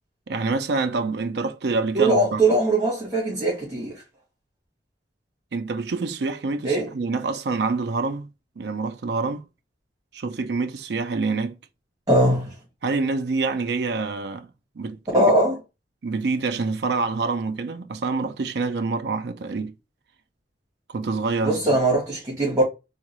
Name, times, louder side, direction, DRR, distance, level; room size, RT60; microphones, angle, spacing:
voice 1, 0.3-2.4 5.5-8.3 8.6-9.4 10.1-11.6 12.8-14.5 14.8-15.2 16.0-19.7 20.9-21.8, right 4 dB, 65° right, 0.4 m, -26 dB
voice 2, 1.9-4.0 6.6-6.9 12.1-12.5 15.1-15.6 21.4-22.6, right 1 dB, 20° right, 1.3 m, -20 dB
3.6 x 2.3 x 3.0 m
head